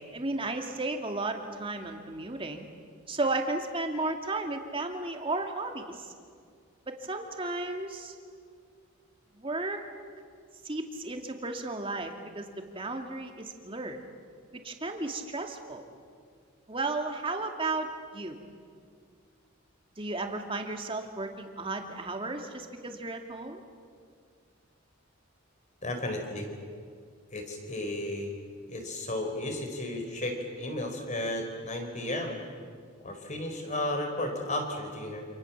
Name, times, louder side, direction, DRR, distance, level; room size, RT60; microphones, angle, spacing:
voice 1, 0.0-2.7 3.1-6.1 6.9-8.1 9.4-9.8 10.6-14.0 14.5-15.8 16.7-17.9 18.1-18.4 20.0-23.6, right 2 dB, 25° right, 4 dB, 2.4 m, -34 dB
voice 2, 25.8-26.5 27.3-28.4 28.7-32.3 33.0-35.2, left 1 dB, 35° left, 4 dB, 4.5 m, -33 dB
28.5 x 27.5 x 7.4 m, 2.1 s
head